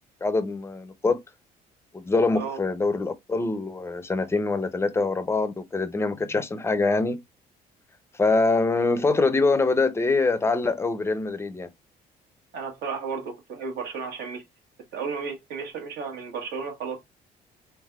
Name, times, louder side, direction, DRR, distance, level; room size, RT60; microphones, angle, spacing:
voice 1, 0.2-1.2 1.9-7.2 8.1-11.7, left 3 dB, 15° left, 0.5 m, -24 dB
voice 2, 12.5-14.4 14.9-17.0, right 5 dB, 70° right, 1.3 m, -33 dB
3.4 x 3.3 x 2.3 m
cardioid pair, 110°, 17 cm